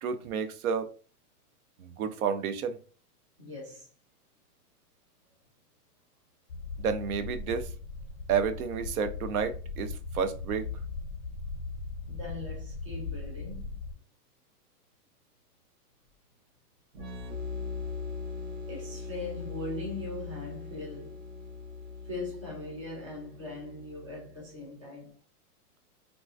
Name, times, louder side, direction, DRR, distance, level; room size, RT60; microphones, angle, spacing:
voice 1, 0.0-0.9 1.8-2.8 6.8-7.7 8.3-10.7, right 6 dB, 70° right, 0.6 m, -30 dB
voice 2, 3.4-3.9 12.0-13.8 18.0-18.1 18.7-21.3 22.0-25.1, left 2 dB, 25° right, 0.3 m, -40 dB
sound 1, 6.5-13.9, left 4 dB, 35° left, 0.5 m, -39 dB
sound 2, 16.9-24.5, left 4 dB, 45° right, 1.2 m, -40 dB
3.7 x 2.4 x 2.3 m
supercardioid pair, 170°, 46 cm